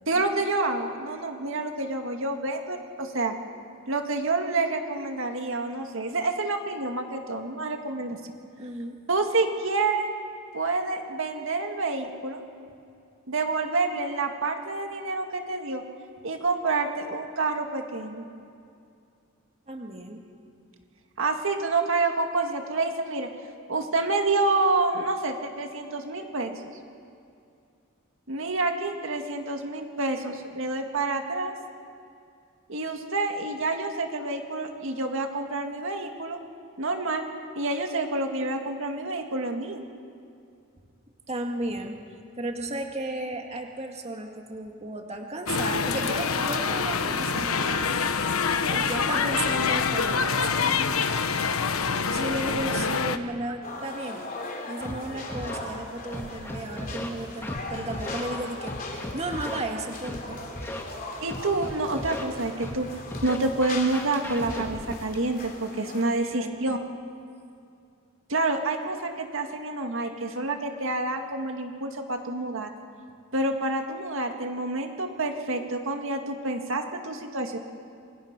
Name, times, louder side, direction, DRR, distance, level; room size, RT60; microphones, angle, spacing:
voice 1, 0.1-3.3 3.9-8.2 9.1-10.1 10.5-12.4 13.3-15.8 16.2-18.3 21.2-23.3 23.7-26.6 28.3-31.5 32.7-36.4 36.8-37.2 37.6-39.8 61.2-66.8 68.3-72.7 73.3-77.6, right 3 dB, 65° right, 4 dB, 2.0 m, -28 dB
voice 2, 8.6-9.0 19.7-20.2 41.3-42.0 42.4-51.2 52.1-54.3 54.7-58.7 59.1-60.4 66.0-66.8, right 2 dB, 30° right, 2 dB, 2.0 m, -34 dB
sound 1, 45.5-53.2, left 5 dB, 85° left, 1.1 m, -26 dB
sound 2, 53.6-66.0, left 2 dB, 45° left, 3.5 m, -39 dB
Scratching (performance technique), 54.8-54.9 55.3-55.6 56.1-57.1 57.4-57.6 57.9-58.2 58.7-59.6 60.0-60.2 60.6-60.8 61.3-62.2 62.6-62.8 63.1-64.9, left 1 dB, 10° left, 1.9 m, -35 dB
27.5 x 25.0 x 6.0 m, 2.5 s
head